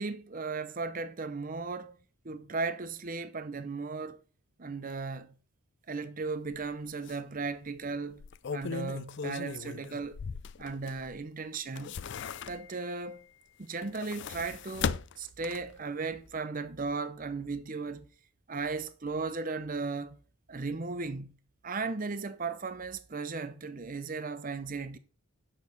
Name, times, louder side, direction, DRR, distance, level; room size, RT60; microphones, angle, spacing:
voice 1, 0.0-2.0 2.2-4.2 4.6-5.3 5.9-8.2 8.5-10.2 10.6-12.0 12.5-13.3 13.6-18.1 18.5-20.2 20.5-21.4 21.6-25.0, right 4 dB, 40° right, 0.7 m, -36 dB
sound 1, 6.5-6.7 7.1-7.2 8.1-11.2 11.5-12.9 13.7-15.8 16.2-16.3, left 6 dB, 55° left, 0.4 m, -38 dB
8.6 x 6.8 x 4.0 m
head